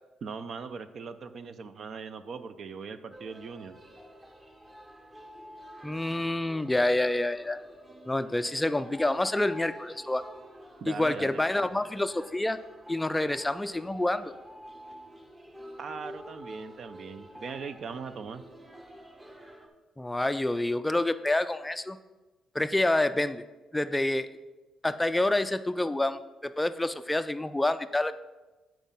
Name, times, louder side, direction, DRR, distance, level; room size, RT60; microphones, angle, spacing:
voice 1, 0.2-3.8 10.8-11.4 15.8-18.4, right 5 dB, 55° right, 11 dB, 0.6 m, -40 dB
sound 1, 3.1-19.7, equal, 15° right, 1.1 m, -49 dB
voice 2, 5.8-7.6 8.1-10.2 10.9-12.6 12.9-14.3 20.0-22.0 22.5-23.4 23.7-24.3 24.8-28.1, left 1 dB, 10° left, 12 dB, 0.3 m, -27 dB
9.2 x 4.5 x 5.4 m, 1.1 s
cardioid pair, 90°, 0 cm